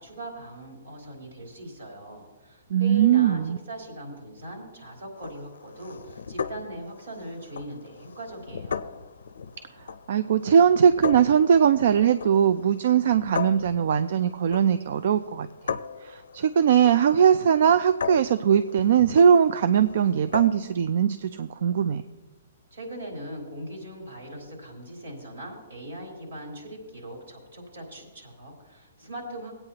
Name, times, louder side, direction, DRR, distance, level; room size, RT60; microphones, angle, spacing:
voice 1, 0.0-9.0 22.7-29.5, right 1 dB, 80° right, -1 dB, 3.6 m, -40 dB
voice 2, 2.7-3.6 10.1-15.8 16.0-22.0, right 8 dB, 55° right, 12 dB, 0.3 m, -20 dB
sound 1, 5.2-20.7, left 6 dB, 90° left, 0.4 m, -38 dB
18.5 x 8.8 x 2.8 m, 1.2 s
hypercardioid pair, 160°, 0 cm